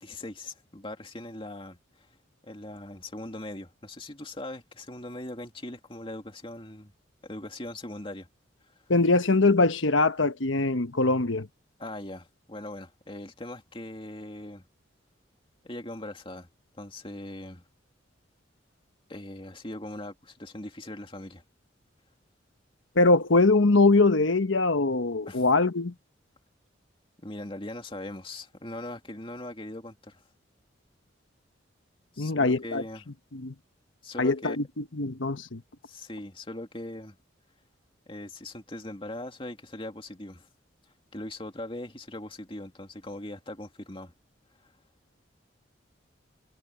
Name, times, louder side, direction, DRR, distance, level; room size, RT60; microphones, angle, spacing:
voice 1, 0.0-2.1 2.4-6.9 7.2-8.3 11.8-14.6 15.6-16.5 16.8-17.6 19.1-21.4 25.3-25.4 27.2-30.2 32.1-33.0 34.0-34.6 35.8-37.2 38.1-40.5 41.1-44.1 44.6-44.7, left 1 dB, 30° left, 2.6 m, -40 dB
voice 2, 8.9-11.5 22.9-25.9 32.2-32.8 33.3-33.5 34.2-35.6, left 3 dB, 85° left, 1.2 m, -22 dB
head